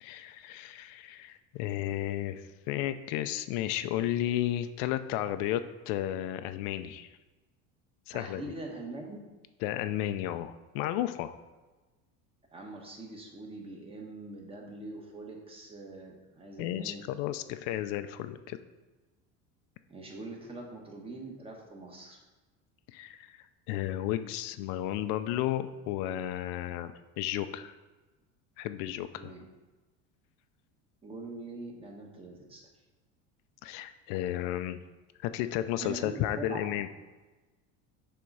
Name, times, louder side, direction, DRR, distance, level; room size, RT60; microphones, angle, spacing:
voice 1, 0.0-7.1 8.1-8.5 9.6-11.4 16.6-18.6 22.9-27.7 28.6-29.3 33.6-34.8 35.2-36.9, left 12 dB, 70° left, 10 dB, 0.5 m, -33 dB
voice 2, 8.1-9.2 12.5-17.0 19.9-22.2 29.2-29.4 31.0-32.6 35.8-36.7, right 2 dB, 15° right, 0 dB, 1.1 m, -43 dB
7.6 x 3.7 x 5.4 m, 1.2 s
cardioid pair, 150°, 34 cm